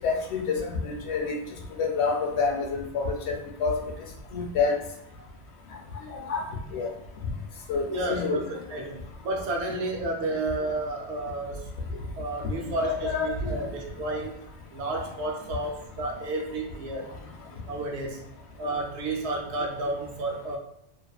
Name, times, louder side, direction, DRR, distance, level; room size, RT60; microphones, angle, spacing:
voice 1, 0.0-1.4 1.8-3.3 3.6-3.7 4.3-4.8 6.3-6.4 6.7-6.9 7.7-8.5 12.6-13.6, left 4 dB, 80° left, 1 dB, 0.9 m, -27 dB
voice 2, 7.9-8.4 8.7-9.0 9.2-11.7 12.1-14.3 14.7-17.1 17.7-18.2 18.6-20.6, right 2 dB, 85° right, 0 dB, 0.9 m, -31 dB
2.5 x 2.4 x 2.3 m, 0.75 s
omnidirectional pair, 1.1 m